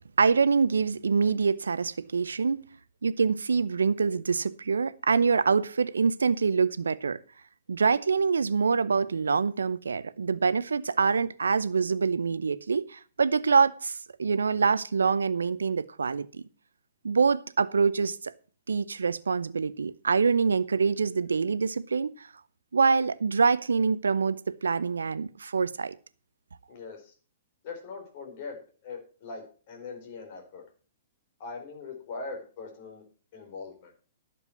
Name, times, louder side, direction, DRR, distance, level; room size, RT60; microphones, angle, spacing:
voice 1, 0.2-2.7 3.0-7.2 7.7-16.4 17.0-18.3 18.7-22.3 22.7-26.0, right 5 dB, 75° right, 0.6 m, -25 dB
voice 2, 26.7-27.1 27.6-28.6 28.8-30.6 31.4-33.0 33.3-33.9, left 4 dB, 50° left, 4.3 m, -41 dB
11.0 x 7.0 x 7.1 m
figure-of-eight pair, 115°, 0 cm